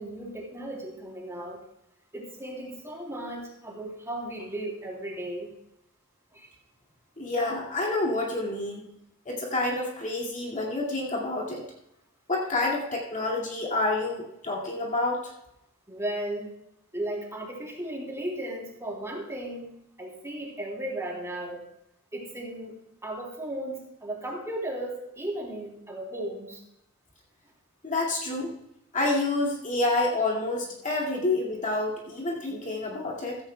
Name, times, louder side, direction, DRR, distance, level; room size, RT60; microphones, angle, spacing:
voice 1, 0.0-1.6 2.1-5.5 6.3-6.5 15.9-16.5 16.9-19.7 20.0-21.6 22.1-22.7 23.0-26.6, right 1 dB, 15° right, -2 dB, 3.3 m, -35 dB
voice 2, 7.2-8.8 9.3-11.6 12.3-15.3 27.8-28.5 28.9-33.4, left 2 dB, 35° left, -3 dB, 2.2 m, -28 dB
15.5 x 15.0 x 2.3 m, 0.80 s
head